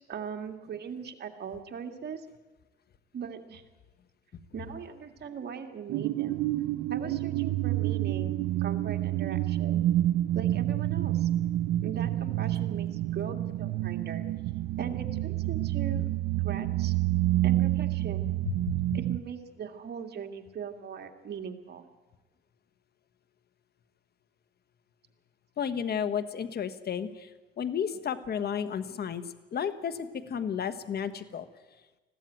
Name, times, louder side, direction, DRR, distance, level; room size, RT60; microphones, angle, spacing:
voice 1, 0.0-2.3 3.1-3.6 4.5-6.4 6.9-9.8 10.3-11.3 11.8-14.2 14.8-16.1 16.4-16.9 17.4-18.2 18.9-21.8, right 7 dB, 55° right, 4 dB, 2.1 m, -39 dB
sound 1, 5.9-19.2, right 14 dB, 90° right, 0.6 m, -28 dB
voice 2, 25.6-27.3 27.6-31.4, left 7 dB, 55° left, 11 dB, 1.4 m, -32 dB
20.5 x 14.5 x 9.2 m, 1.2 s
cardioid pair, 90°, 20 cm